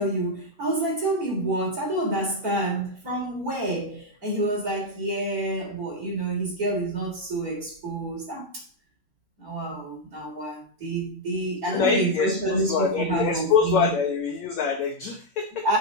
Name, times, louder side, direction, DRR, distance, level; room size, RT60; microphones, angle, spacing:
voice 1, 0.0-8.6 9.4-13.9 15.6-15.8, right 2 dB, 25° right, 3.5 m, -28 dB
voice 2, 11.7-15.6, left 6 dB, 75° left, 1.6 m, -25 dB
9.5 x 7.2 x 4.0 m
omnidirectional pair, 4.6 m